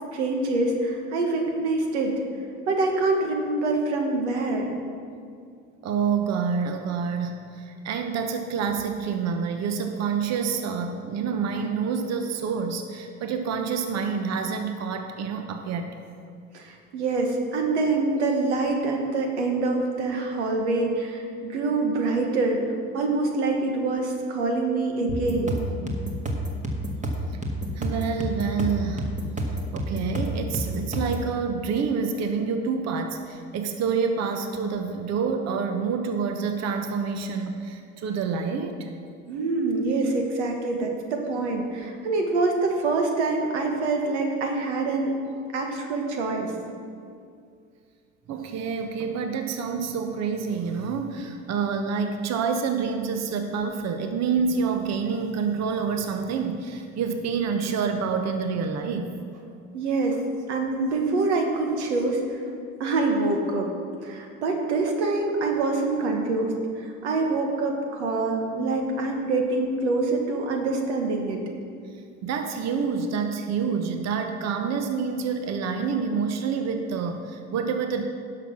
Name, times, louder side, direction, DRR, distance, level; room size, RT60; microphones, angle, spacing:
voice 1, 0.1-2.2 2.7-4.7 16.5-22.6 22.9-25.6 39.3-45.1 45.5-46.5 59.7-60.2 60.5-62.4 62.8-63.7 64.0-71.4, right 3 dB, 90° right, 3 dB, 1.3 m, -25 dB
voice 2, 5.8-16.0 27.8-29.1 29.7-38.9 48.3-59.1 72.2-78.1, right 5 dB, 50° right, 6 dB, 0.9 m, -27 dB
sound 1, 25.1-31.3, right 1 dB, 20° right, 1.6 m, -29 dB
11.0 x 5.9 x 5.9 m, 2.3 s
hypercardioid pair, 75°, 33 cm